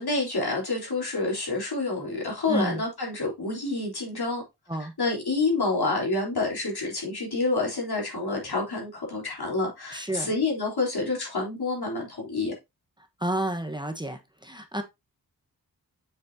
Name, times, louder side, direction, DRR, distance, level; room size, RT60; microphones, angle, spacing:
voice 1, 0.0-4.4 4.8-12.5, left 3 dB, 80° left, 3.6 m, -28 dB
voice 2, 2.5-2.8 4.7-4.9 9.9-10.3 13.2-14.8, right 1 dB, 10° right, 1.1 m, -30 dB
7.2 x 6.3 x 2.7 m
wide cardioid pair, 65°, 38 cm